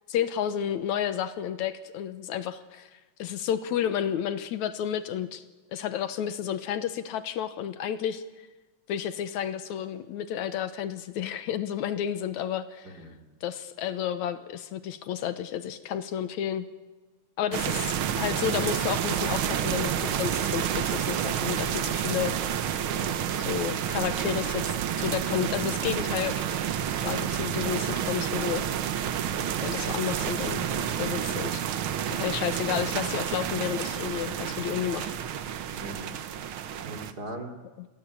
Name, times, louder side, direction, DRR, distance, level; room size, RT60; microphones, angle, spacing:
voice 1, 0.1-2.9 3.2-5.4 5.7-8.2 8.9-12.9 13.4-16.7 17.4-22.4 23.5-26.4 27.0-28.7 29.6-31.6 32.1-35.1 37.8-37.9, left 9 dB, 75° left, 12 dB, 2.3 m, -31 dB
voice 2, 12.8-13.2 22.9-23.3 31.2-31.6 35.7-36.2 36.7-37.5, right 1 dB, 30° right, 4 dB, 3.2 m, -40 dB
sound 1, 17.5-37.1, right 9 dB, 60° right, 1.5 m, -29 dB
27.5 x 20.5 x 8.5 m, 1.2 s
omnidirectional pair, 3.4 m